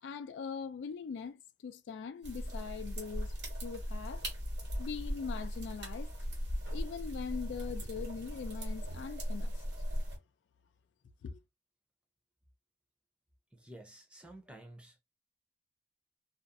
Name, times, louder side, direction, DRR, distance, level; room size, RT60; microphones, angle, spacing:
voice 1, 0.0-3.3 3.6-4.2 4.8-6.1 6.7-9.6 11.2-11.4, left 6 dB, 80° left, 0.3 m, -41 dB
sound 1, 2.2-10.2, equal, 75° right, 1.1 m, -38 dB
voice 2, 13.5-15.0, right 1 dB, 5° right, 0.5 m, -52 dB
2.5 x 2.0 x 2.5 m
head